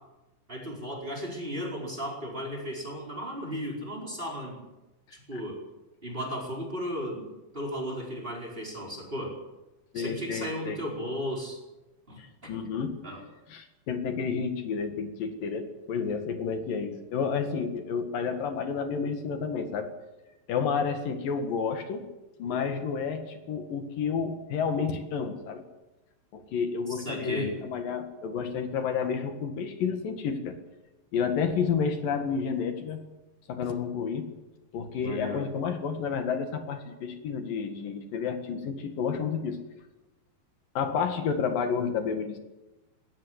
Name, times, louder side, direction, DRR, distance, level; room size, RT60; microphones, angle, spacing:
voice 1, 0.5-4.6 5.1-5.6 6.0-9.4 9.9-11.6 12.1-12.5 13.0-13.2 27.0-27.6 35.0-35.4, equal, 15° right, 0 dB, 5.1 m, -35 dB
voice 2, 9.9-10.8 12.2-13.0 13.5-19.9 20.5-22.1 22.4-25.6 26.3-30.6 31.1-33.0 33.5-34.3 34.7-39.6 40.8-42.4, left 6 dB, 80° left, 7 dB, 3.7 m, -30 dB
20.0 x 18.5 x 8.2 m, 1.0 s
omnidirectional pair, 3.9 m